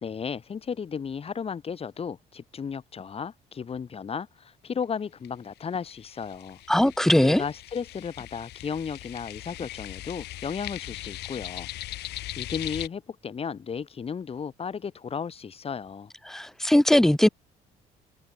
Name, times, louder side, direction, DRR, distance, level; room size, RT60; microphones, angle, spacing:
voice 1, 0.0-6.6 7.2-11.7 12.4-16.1, left 6 dB, 35° left, 3.3 m, -34 dB
sound 1, 4.8-4.9 5.2-5.3 5.6-12.9, left 16 dB, 80° left, 5.0 m, -39 dB
voice 2, 6.7-7.4 16.3-17.3, left 1 dB, 5° left, 0.4 m, -20 dB
cardioid pair, 110°, 17 cm